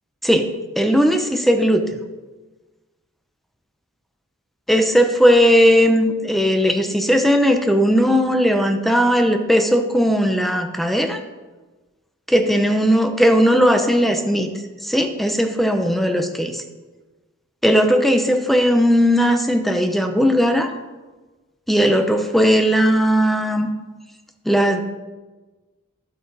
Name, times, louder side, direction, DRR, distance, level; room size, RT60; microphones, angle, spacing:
voice 1, 0.8-1.8 4.7-11.2 12.3-14.5 14.8-16.6 17.6-20.7 21.7-23.7 24.5-24.8, equal, ahead, 6 dB, 0.8 m, -17 dB
11.5 x 8.7 x 4.1 m, 1.2 s
head